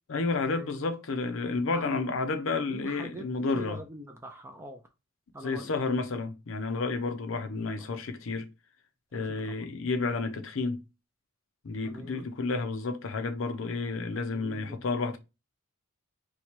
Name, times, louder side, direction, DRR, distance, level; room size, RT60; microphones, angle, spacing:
voice 1, 0.1-3.8 5.4-8.5 9.1-10.8 11.6-15.2, left 3 dB, 65° left, 0.6 m, -31 dB
voice 2, 1.7-2.0 2.7-3.3 3.5-4.8 5.3-5.7 7.5-7.9 9.4-9.6 11.8-12.2 14.3-14.9, right 1 dB, 10° right, 0.4 m, -43 dB
3.0 x 2.2 x 4.1 m
head